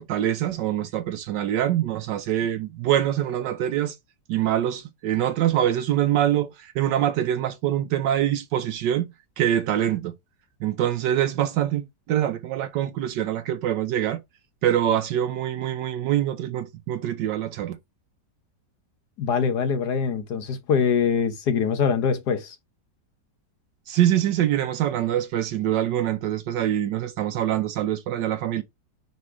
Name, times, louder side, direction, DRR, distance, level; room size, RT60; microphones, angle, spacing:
voice 1, 0.0-3.9 4.3-9.1 9.4-10.1 10.6-14.2 14.6-17.8 23.9-28.6, right 11 dB, 80° right, 1.3 m, -24 dB
voice 2, 19.2-22.6, left 6 dB, 65° left, 1.5 m, -23 dB
5.2 x 4.0 x 4.9 m
omnidirectional pair, 1.9 m